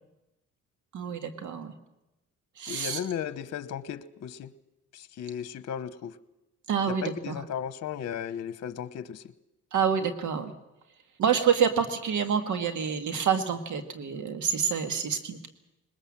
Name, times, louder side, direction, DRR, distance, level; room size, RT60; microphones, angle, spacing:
voice 1, 0.9-1.7 2.6-3.0 6.7-7.4 9.7-10.5 11.2-15.5, right 7 dB, 75° right, 8 dB, 2.0 m, -27 dB
voice 2, 2.7-4.5 4.9-6.2 6.9-9.2, left 8 dB, 60° left, 14 dB, 1.0 m, -35 dB
21.0 x 20.5 x 7.5 m, 0.94 s
cardioid pair, 90°, 30 cm